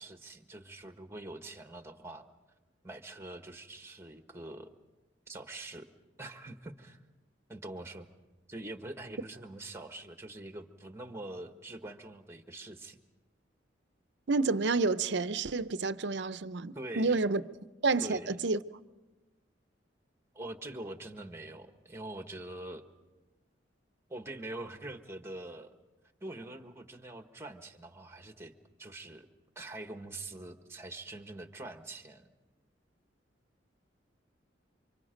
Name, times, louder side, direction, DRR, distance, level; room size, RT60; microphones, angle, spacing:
voice 1, 0.0-2.3 2.8-4.7 5.3-5.9 6.2-7.0 7.5-8.1 8.5-13.0 16.7-17.2 18.0-18.4 20.3-22.8 24.1-25.7 26.2-28.5 28.8-29.3 29.5-32.3, right 2 dB, 15° right, 1.4 m, -44 dB
voice 2, 14.3-17.4 17.8-18.6, right 3 dB, 65° right, 0.7 m, -29 dB
28.5 x 25.5 x 5.2 m
head